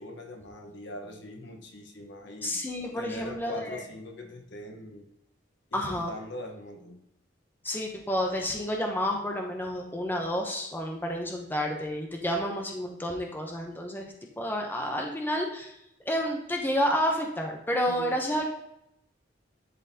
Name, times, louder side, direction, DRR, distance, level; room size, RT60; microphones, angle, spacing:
voice 1, 0.0-2.6 2.9-5.1 5.7-7.0 17.9-18.2, left 2 dB, 65° left, 3 dB, 1.0 m, -41 dB
voice 2, 2.4-3.8 5.7-6.1 7.6-14.1 14.4-15.7 16.1-18.5, equal, 10° left, 1 dB, 0.7 m, -30 dB
11.0 x 3.9 x 2.8 m, 0.81 s
head